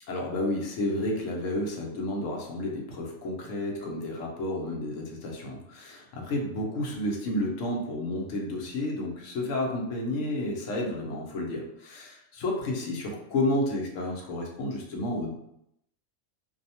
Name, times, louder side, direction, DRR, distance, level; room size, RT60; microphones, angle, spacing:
voice 1, 0.1-15.4, left 1 dB, 70° left, 0 dB, 1.0 m, -31 dB
2.7 x 2.0 x 2.7 m, 0.79 s
omnidirectional pair, 1.4 m